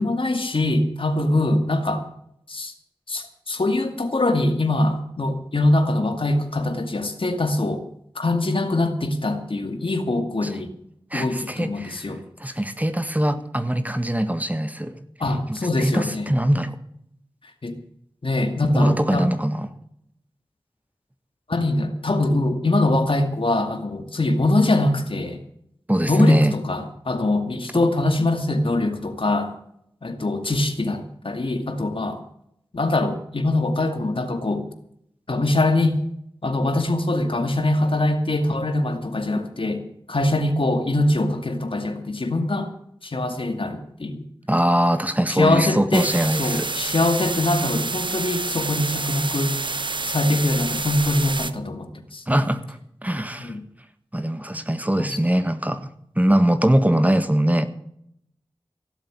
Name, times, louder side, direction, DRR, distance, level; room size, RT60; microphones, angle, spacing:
voice 1, 0.0-2.0 2.5-2.7 3.1-7.8 8.1-10.7 11.1-12.2 15.2-16.2 17.6-17.8 18.2-19.3 21.5-25.4 26.1-29.5 30.0-32.2 32.7-34.7 35.3-36.0 36.4-42.7 43.0-44.2 45.3-46.1 46.4-49.6 50.0-52.2 53.4-53.6 55.0-55.2, left 2 dB, 70° left, 7 dB, 2.3 m, -23 dB
voice 2, 11.1-15.0 15.5-16.8 18.7-19.7 25.9-26.5 44.5-46.7 52.3-53.5 54.1-55.9 56.1-57.7, right 1 dB, 15° right, 10 dB, 1.6 m, -22 dB
sound 1, 45.9-51.5, right 3 dB, 60° right, 1.0 m, -28 dB
16.5 x 7.6 x 8.9 m, 0.73 s
wide cardioid pair, 45°, 9 cm